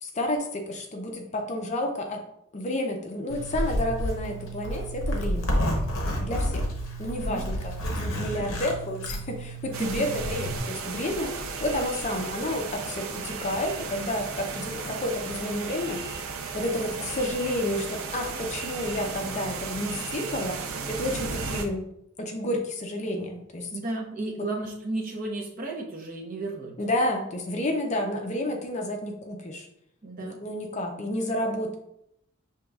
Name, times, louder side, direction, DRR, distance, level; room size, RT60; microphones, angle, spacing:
voice 1, 0.0-2.2 2.5-5.5 6.2-6.6 7.0-11.3 11.6-16.0 16.5-20.6 20.9-21.9 22.2-23.7 26.8-29.7 30.2-31.7, left 1 dB, 30° left, 3 dB, 0.5 m, -30 dB
Zipper (clothing), 3.3-10.6, equal, 65° left, 0.8 m, -30 dB
voice 2, 8.1-8.6 9.8-10.2 23.7-26.7 30.0-30.4, right 2 dB, 40° right, -1 dB, 0.8 m, -34 dB
sound 1, 9.7-21.7, right 5 dB, 75° right, 0.5 m, -35 dB
6.3 x 3.0 x 2.3 m, 0.76 s
head